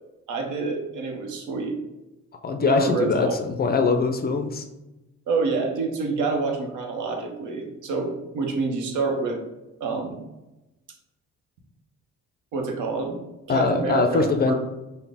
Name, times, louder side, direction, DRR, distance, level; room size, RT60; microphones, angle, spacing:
voice 1, 0.3-1.8 2.6-3.4 5.3-9.4 9.8-10.2 12.5-13.2 13.5-14.5, right 4 dB, 80° right, 3 dB, 0.7 m, -27 dB
voice 2, 2.4-4.6 13.5-14.5, left 4 dB, 35° left, 6 dB, 0.4 m, -22 dB
3.8 x 2.1 x 3.4 m, 1.0 s
cardioid pair, 90°, 30 cm